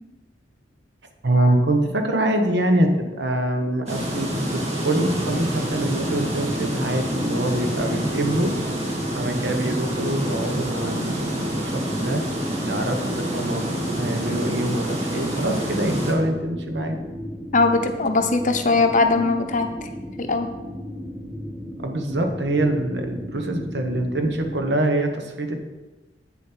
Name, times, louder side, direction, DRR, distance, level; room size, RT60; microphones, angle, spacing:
voice 1, 1.2-8.5 9.1-17.0 18.7-18.9 21.8-25.6, right 1 dB, 65° right, 5 dB, 1.1 m, -24 dB
sound 1, 3.9-16.1, right 1 dB, 35° right, 1.9 m, -27 dB
sound 2, 5.1-24.6, equal, 10° right, 2.8 m, -36 dB
voice 2, 17.5-19.7 20.2-20.5, left 3 dB, 45° left, 6 dB, 0.7 m, -20 dB
8.3 x 7.1 x 4.5 m, 1.1 s
head